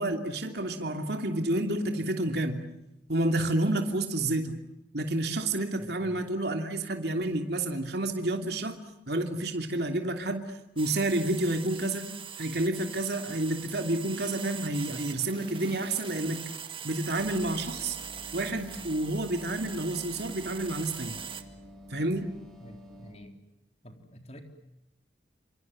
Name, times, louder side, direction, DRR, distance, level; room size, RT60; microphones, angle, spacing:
voice 1, 0.0-2.7 3.1-4.6 4.9-8.8 9.1-10.4 10.8-12.1 12.4-16.4 16.8-18.0 18.3-21.2 21.9-22.3, right 1 dB, 60° right, 4 dB, 2.9 m, -29 dB
sound 1, 10.8-21.4, right 7 dB, 30° right, 1.9 m, -42 dB
voice 2, 14.9-15.2 22.6-23.3 23.8-24.4, equal, 35° left, 5 dB, 3.9 m, -49 dB
sound 2, 17.2-23.1, equal, 5° left, 7.4 m, -49 dB
28.0 x 27.5 x 7.7 m, 0.84 s
head